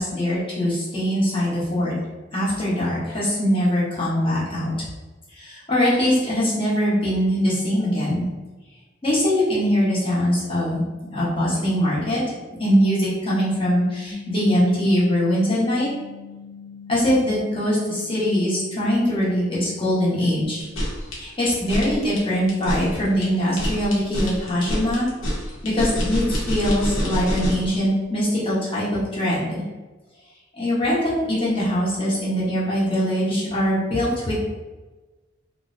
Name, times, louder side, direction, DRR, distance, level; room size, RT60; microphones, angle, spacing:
voice 1, 0.0-1.9 2.3-4.9 5.3-8.2 9.0-12.2 12.6-15.9 16.9-20.6 21.2-25.1 25.6-29.5 30.5-34.3, equal, 25° left, -8 dB, 0.9 m, -22 dB
sound 1, 14.1-20.4, left 6 dB, 10° left, 0.4 m, -41 dB
sound 2, 20.6-27.7, equal, 85° left, 0.7 m, -27 dB
2.5 x 2.1 x 2.5 m, 1.2 s
head